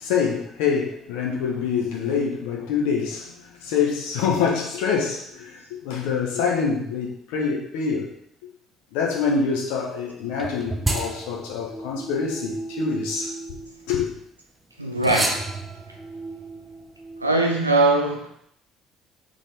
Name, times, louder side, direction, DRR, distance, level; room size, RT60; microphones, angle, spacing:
voice 1, 0.0-8.1 8.9-13.3 13.9-14.1, left 6 dB, 65° left, 0.8 m, -25 dB
sound 1, 10.4-14.2 15.0-17.3, right 2 dB, 20° right, 0.8 m, -32 dB
voice 2, 14.8-15.4 17.2-18.3, right 2 dB, 90° right, 0.6 m, -21 dB
4.1 x 3.5 x 3.3 m
figure-of-eight pair, 50°, 0 cm